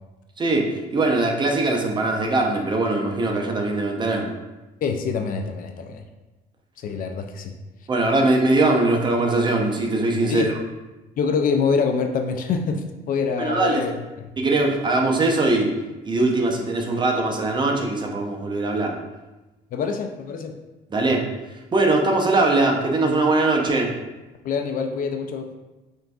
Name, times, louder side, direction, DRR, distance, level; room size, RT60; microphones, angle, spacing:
voice 1, 0.4-4.3 7.9-10.5 13.4-13.8 14.4-15.7 16.0-18.9 20.9-21.2 21.7-23.9, right 2 dB, 25° right, 1 dB, 0.6 m, -21 dB
voice 2, 4.8-6.0 6.8-7.5 10.3-10.5 11.2-14.3 19.7-20.5 24.4-25.5, left 5 dB, 55° left, 5 dB, 0.4 m, -25 dB
5.9 x 2.6 x 2.3 m, 1.1 s
cardioid pair, 110°, 17 cm